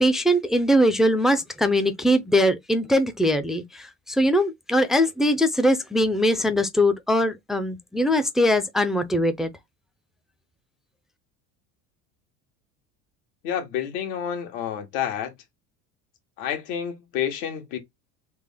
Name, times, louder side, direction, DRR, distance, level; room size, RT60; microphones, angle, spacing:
voice 1, 0.0-9.5, equal, ahead, 0.3 m, -21 dB
voice 2, 13.4-15.3 16.4-17.8, left 9 dB, 80° left, 1.3 m, -29 dB
3.4 x 2.0 x 3.5 m
supercardioid pair, 115°, 35 cm